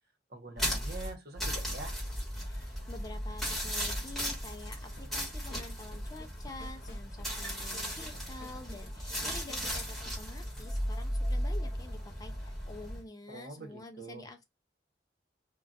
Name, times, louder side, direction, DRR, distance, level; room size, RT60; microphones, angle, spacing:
voice 1, 0.3-2.0 13.3-14.3, right 2 dB, 60° right, 0.9 m, -45 dB
sound 1, 0.6-13.0, equal, ahead, 1.2 m, -36 dB
voice 2, 2.5-14.4, left 2 dB, 20° left, 0.4 m, -48 dB
sound 2, 5.0-11.3, left 1 dB, 60° left, 0.8 m, -54 dB
2.4 x 2.2 x 3.9 m
head